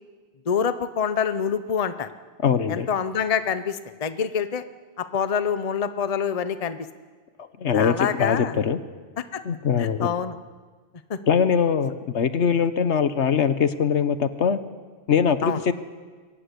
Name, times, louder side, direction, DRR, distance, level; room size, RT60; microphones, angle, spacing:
voice 1, 0.5-2.1 2.7-4.6 5.0-6.9 7.7-8.5 9.3-9.4 9.8-10.4 11.1-11.2 15.4-15.6, left 7 dB, 35° left, 11 dB, 0.8 m, -26 dB
voice 2, 2.4-2.9 7.4-8.8 9.4-10.1 11.3-14.6 15.1-15.7, left 7 dB, 70° left, 12 dB, 1.3 m, -22 dB
23.0 x 19.5 x 8.4 m, 1.5 s
omnidirectional pair, 1.2 m